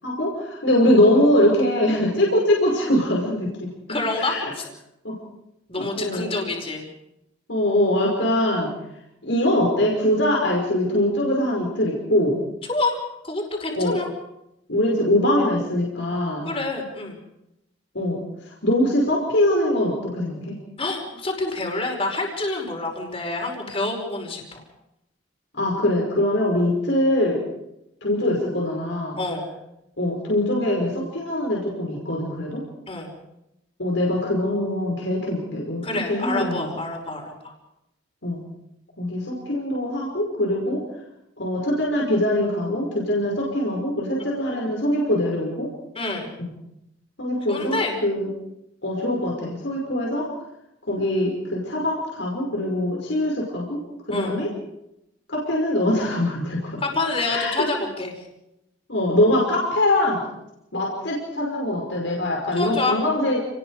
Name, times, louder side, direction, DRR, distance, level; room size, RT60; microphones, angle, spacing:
voice 1, 0.0-4.5 5.0-5.2 5.8-6.3 7.5-8.7 9.2-12.4 13.7-13.9 14.7-16.5 17.9-20.6 25.6-27.4 28.0-29.2 30.0-32.6 33.8-36.7 38.2-38.4 39.0-40.8 41.4-45.7 46.4-46.5 47.2-48.3 48.8-50.3 50.9-53.8 54.1-54.5 55.3-56.8 57.3-57.7 58.9-60.2 60.7-63.4, left 1 dB, 70° left, -2 dB, 5.7 m, -23 dB
voice 2, 3.9-4.6 5.7-6.8 12.7-13.0 13.2-14.1 16.4-17.1 20.8-24.6 29.2-29.5 32.9-33.1 35.8-37.5 45.9-46.3 47.5-47.9 54.1-54.4 56.8-58.1 62.5-63.0, left 2 dB, 30° left, 1 dB, 5.3 m, -27 dB
29.5 x 20.5 x 5.0 m, 0.85 s
head